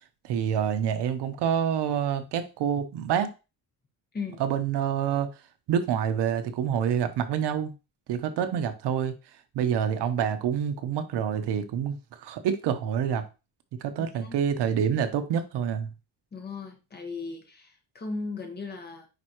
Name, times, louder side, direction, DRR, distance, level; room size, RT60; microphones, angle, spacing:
voice 1, 0.2-3.3 4.4-5.3 5.7-7.7 8.1-9.1 9.5-13.3 13.8-15.9, right 8 dB, 80° right, 1.0 m, -27 dB
voice 2, 14.0-14.4 16.3-19.1, left 4 dB, 25° left, 1.5 m, -37 dB
9.6 x 4.3 x 3.0 m
cardioid pair, 170°, 41 cm